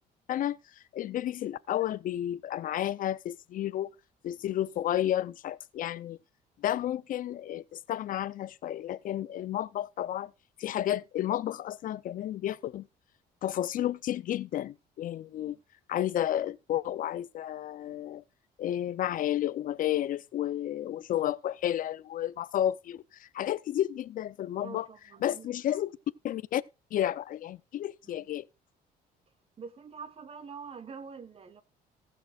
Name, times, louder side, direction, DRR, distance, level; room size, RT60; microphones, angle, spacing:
voice 1, 0.3-3.9 4.2-6.2 6.6-10.3 10.6-12.9 13.4-15.6 15.9-18.2 18.6-24.9 25.2-25.9 26.2-26.6 26.9-28.4, left 12 dB, 55° left, 0.5 m, -32 dB
voice 2, 24.6-25.8 28.0-28.3 29.6-31.6, right 5 dB, 35° right, 1.2 m, -46 dB
19.0 x 6.5 x 2.4 m
cardioid pair, 110°, 17 cm